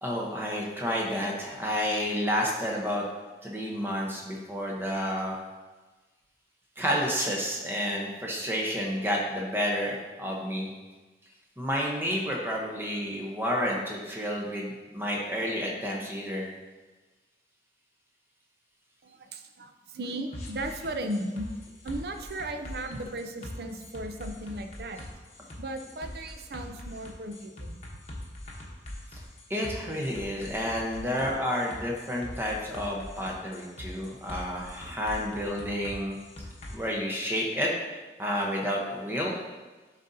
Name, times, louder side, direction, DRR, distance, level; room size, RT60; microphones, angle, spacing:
voice 1, 0.0-3.0 3.4-5.4 6.8-10.7 11.6-16.5 29.1-29.2 29.5-36.2 36.7-37.7 38.2-39.3, equal, 10° right, -2 dB, 0.8 m, -30 dB
voice 2, 19.0-25.0 25.6-27.8, right 1 dB, 60° right, 6 dB, 0.5 m, -36 dB
sound 1, 20.3-36.7, left 1 dB, 40° left, 0.9 m, -43 dB
10.0 x 4.1 x 2.7 m, 1.3 s
head